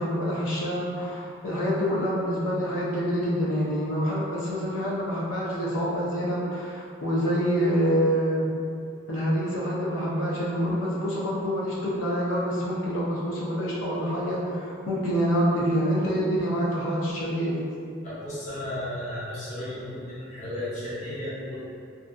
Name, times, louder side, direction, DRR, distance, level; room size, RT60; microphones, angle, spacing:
voice 1, 0.0-8.5 9.1-17.6, equal, 85° left, -6 dB, 0.5 m, -26 dB
voice 2, 18.0-21.6, left 1 dB, 40° left, -9 dB, 0.7 m, -34 dB
2.5 x 2.4 x 2.2 m, 2.3 s
head